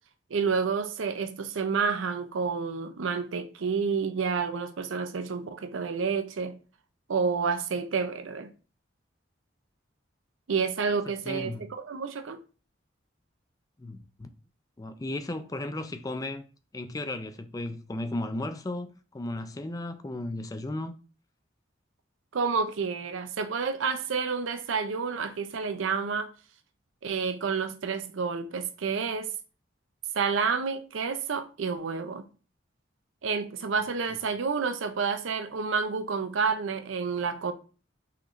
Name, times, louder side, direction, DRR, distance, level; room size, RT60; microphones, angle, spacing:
voice 1, 0.3-6.6 7.1-8.5 10.5-12.4 22.3-26.3 27.0-29.3 30.1-32.3 33.2-37.5, right 5 dB, 85° right, 0.5 m, -29 dB
voice 2, 11.2-11.6 13.8-14.3 14.8-16.5 16.7-20.9, left 2 dB, 20° left, 0.4 m, -35 dB
5.7 x 3.1 x 2.5 m
head